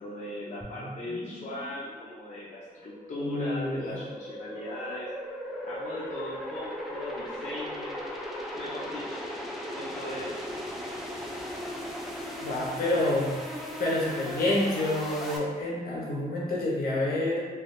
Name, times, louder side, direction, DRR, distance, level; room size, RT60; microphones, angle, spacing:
voice 1, 0.0-5.1 5.6-8.1 8.5-9.2 9.7-10.4, left 1 dB, 55° left, -7 dB, 0.5 m, -38 dB
sound 1, 0.6-15.4, equal, ahead, 0.4 m, -38 dB
voice 2, 3.2-4.0 12.4-13.4 13.8-17.4, left 1 dB, 80° left, -4 dB, 0.9 m, -28 dB
3.3 x 2.4 x 2.5 m, 1.5 s
wide cardioid pair, 120°, 16 cm